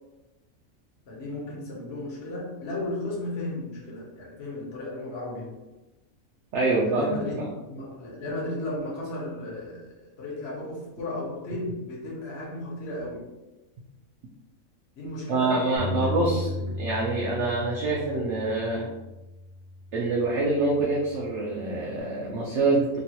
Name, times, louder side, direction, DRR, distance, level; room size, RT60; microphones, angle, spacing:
voice 1, 1.1-5.6 6.7-13.3 15.0-16.8, left 2 dB, 55° left, -4 dB, 1.0 m, -34 dB
voice 2, 6.5-7.5 15.3-16.4 16.8-18.9 19.9-23.0, right 3 dB, 70° right, -4 dB, 0.8 m, -26 dB
Bass guitar, 15.8-22.0, left 1 dB, 30° right, 0.8 m, -36 dB
3.0 x 2.2 x 2.8 m, 1.0 s
omnidirectional pair, 1.4 m